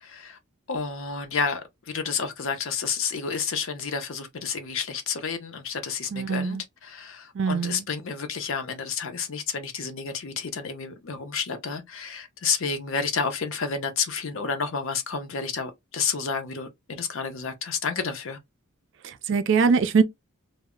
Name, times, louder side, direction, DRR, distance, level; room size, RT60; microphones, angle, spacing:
voice 1, 0.0-0.4 0.7-1.6 1.9-18.4, left 5 dB, 60° left, 0.6 m, -30 dB
voice 2, 6.1-6.6 7.4-7.8 19.3-20.0, right 5 dB, 55° right, 0.4 m, -22 dB
2.0 x 2.0 x 3.5 m
head